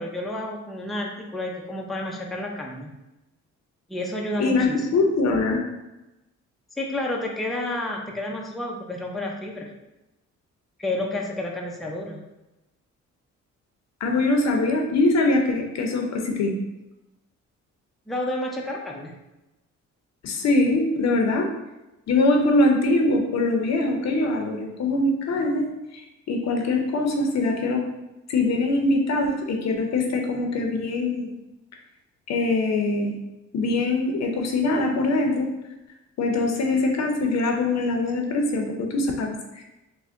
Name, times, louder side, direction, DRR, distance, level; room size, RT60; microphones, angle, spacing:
voice 1, 0.0-2.9 3.9-4.9 6.7-9.7 10.8-12.2 18.1-19.2, left 1 dB, ahead, -1 dB, 0.5 m, -30 dB
voice 2, 4.4-5.6 14.0-16.6 20.2-21.5 22.1-25.7 25.9-26.0 26.3-27.8 28.3-31.3 32.3-33.2 33.5-35.5 36.2-39.6, left 2 dB, 60° left, 2 dB, 0.7 m, -23 dB
3.3 x 2.2 x 3.7 m, 0.99 s
cardioid pair, 90°, 30 cm